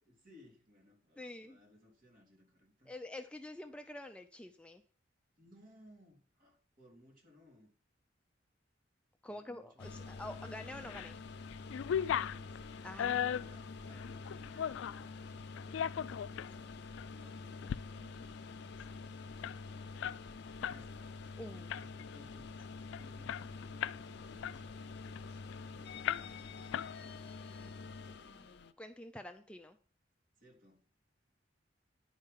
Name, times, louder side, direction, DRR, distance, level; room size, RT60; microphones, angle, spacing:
voice 1, 0.1-3.0 5.4-7.7 9.3-10.4 11.8-16.6 17.1-18.3 20.6-21.1 21.7-22.6 23.0-25.4 25.7-26.5 30.4-31.0, left 1 dB, 50° right, 3.0 m, -62 dB
voice 2, 1.2-1.6 2.9-4.8 9.2-11.2 12.8-13.3 21.4-21.7 28.2-28.5 28.8-29.8, left 1 dB, 5° left, 0.5 m, -47 dB
sound 1, 9.8-28.7, left 4 dB, 65° left, 0.7 m, -47 dB
sound 2, 10.6-11.1 11.5-15.1 15.6-16.5 17.0-17.1 17.5-17.8 18.1-18.2 18.5-20.8 21.1-21.3 21.7-22.1 22.6-22.7 22.9-24.1 24.4-25.6 26.0-26.5 26.7-27.4, left 9 dB, 85° left, 0.3 m, -37 dB
10.0 x 5.1 x 5.7 m
head